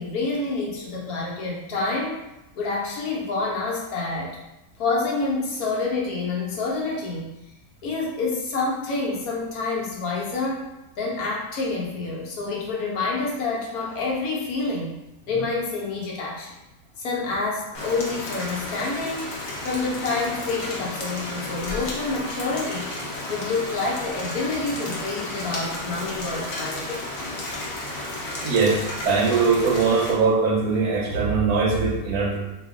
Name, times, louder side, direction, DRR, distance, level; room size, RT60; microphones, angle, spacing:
voice 1, 0.0-2.2 2.5-4.4 4.8-7.3 7.8-10.7 11.0-15.0 15.3-16.6 17.0-19.3 19.6-22.9 23.3-27.0, left 3 dB, 80° left, -3 dB, 1.3 m, -28 dB
Rain, 17.7-30.1, left 1 dB, 50° left, 0.8 m, -33 dB
voice 2, 28.4-28.8 29.0-32.4, right 4 dB, 80° right, 1 dB, 1.1 m, -21 dB
2.9 x 2.5 x 3.5 m, 0.98 s
omnidirectional pair, 1.6 m